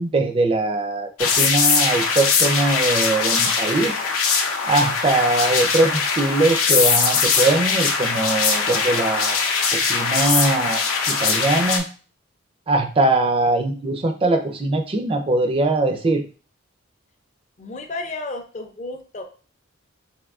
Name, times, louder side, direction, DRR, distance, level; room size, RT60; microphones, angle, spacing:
voice 1, 0.0-4.0 4.6-9.4 9.7-11.9 12.7-16.2, right 2 dB, 25° right, 5 dB, 0.4 m, -21 dB
sound 1, 1.2-11.8, left 5 dB, 85° left, 0.6 m, -21 dB
voice 2, 17.6-19.2, left 2 dB, 35° left, 4 dB, 0.4 m, -32 dB
3.5 x 2.6 x 2.4 m, 0.37 s
head